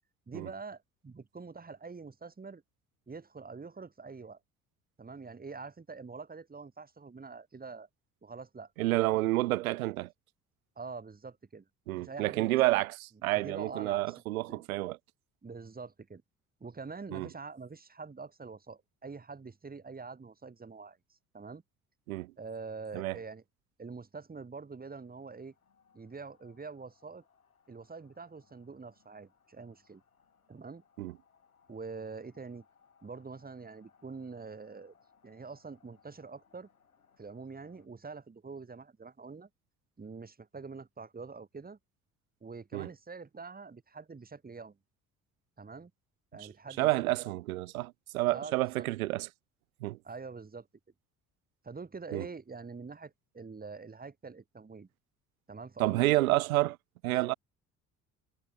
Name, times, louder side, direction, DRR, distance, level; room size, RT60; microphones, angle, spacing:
voice 1, 0.3-2.6 3.1-4.4 5.0-7.9 8.2-8.7 10.8-11.6 11.9-12.5 13.3-14.1 14.5-14.6 15.4-16.2 16.6-21.0 21.3-21.6 22.4-23.4 23.8-25.5 25.9-27.2 27.7-30.0 30.5-30.8 31.7-32.6 33.0-34.9 35.2-36.7 37.2-39.5 40.0-41.8 42.4-44.8 45.6-45.9 46.3-46.9 48.3-48.9 50.0-50.7 51.6-54.9 55.5-56.3, right 4 dB, 20° right, 2.7 m, -45 dB
voice 2, 8.8-10.1 11.9-15.0 17.1-17.3 22.1-22.3 22.9-23.2 31.0-31.1 42.7-42.9 46.4-46.5 46.8-49.3 49.8-50.0 52.1-52.3 55.8-56.8 57.0-57.3, right 18 dB, 75° right, 0.8 m, -29 dB
sound 1, 24.8-37.9, left 6 dB, 85° left, 7.7 m, -68 dB
figure-of-eight pair, 55°, 42 cm